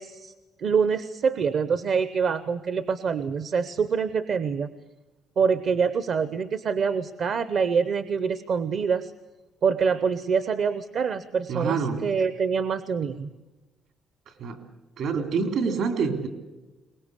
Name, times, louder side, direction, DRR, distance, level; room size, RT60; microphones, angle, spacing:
voice 1, 0.0-4.7 5.4-9.1 9.6-13.3, right 6 dB, 45° right, 13 dB, 0.7 m, -25 dB
voice 2, 11.5-12.0 14.4-14.6 15.0-16.3, right 5 dB, 65° right, 7 dB, 3.2 m, -26 dB
23.0 x 20.0 x 8.2 m, 1.2 s
cardioid pair, 170°, 0 cm